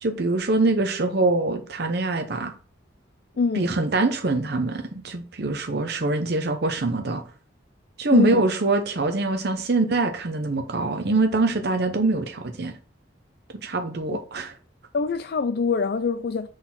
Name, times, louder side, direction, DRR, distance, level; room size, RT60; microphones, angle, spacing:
voice 1, 0.0-2.5 3.5-7.2 8.0-12.7 13.6-14.5, right 3 dB, 55° right, 0.8 m, -24 dB
voice 2, 3.4-3.7 8.1-8.4 14.1-14.2 14.9-16.5, left 4 dB, 55° left, 0.4 m, -24 dB
6.3 x 4.1 x 6.0 m
head